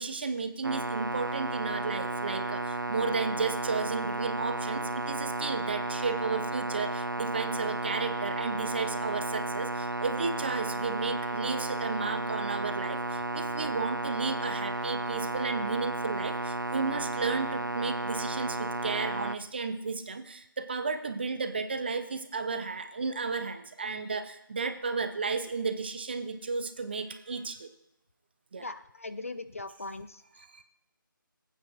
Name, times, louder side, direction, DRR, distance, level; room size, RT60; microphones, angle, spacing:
voice 1, 0.0-27.7 28.5-28.7 30.4-30.6, right 4 dB, 30° right, 9 dB, 0.6 m, -33 dB
sound 1, 0.6-19.4, right 2 dB, 65° right, 0.6 m, -33 dB
voice 2, 28.6-30.2, left 2 dB, 40° left, 12 dB, 0.4 m, -39 dB
18.5 x 9.0 x 2.5 m, 0.83 s
figure-of-eight pair, 160°, 12 cm